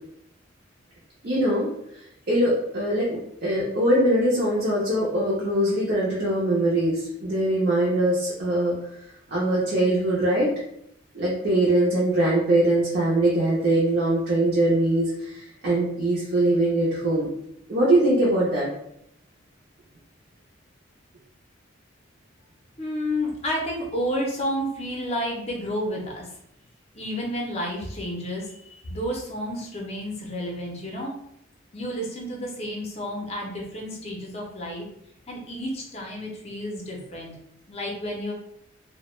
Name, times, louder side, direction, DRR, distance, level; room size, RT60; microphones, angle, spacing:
voice 1, 1.2-1.7 2.3-8.8 9.3-10.5 11.1-17.3 17.7-18.7, right 1 dB, 50° right, -6 dB, 0.5 m, -22 dB
voice 2, 22.8-26.3 26.9-31.1 31.7-34.9 35.3-37.3 37.7-38.3, equal, 30° left, -1 dB, 0.5 m, -31 dB
2.2 x 2.0 x 3.0 m, 0.76 s
head